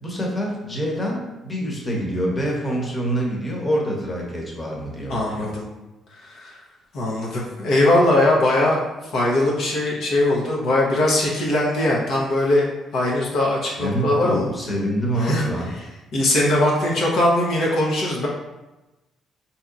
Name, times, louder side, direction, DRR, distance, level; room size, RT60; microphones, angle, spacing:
voice 1, 0.0-5.5 13.8-15.7, right 1 dB, 25° left, -2 dB, 1.0 m, -26 dB
voice 2, 5.1-5.7 6.3-6.6 6.9-8.8 9.1-12.7 12.9-14.5 15.2-15.5 16.1-18.3, left 1 dB, 70° left, -4 dB, 0.8 m, -20 dB
4.3 x 2.8 x 2.5 m, 1.0 s
cardioid pair, 80°, 0 cm